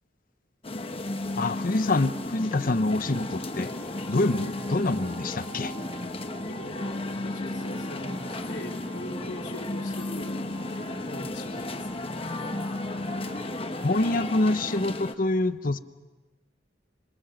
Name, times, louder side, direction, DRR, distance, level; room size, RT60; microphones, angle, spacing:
sound 1, 0.6-15.1, left 2 dB, 30° left, 1.1 m, -34 dB
voice 1, 1.4-3.7 4.1-5.7 13.8-15.8, left 2 dB, 50° left, 12 dB, 0.9 m, -26 dB
sound 2, 2.8-14.9, right 3 dB, 35° right, 6.6 m, -46 dB
voice 2, 6.5-12.1, left 1 dB, 70° left, 0 dB, 4.4 m, -42 dB
26.5 x 26.0 x 6.4 m, 1.2 s
head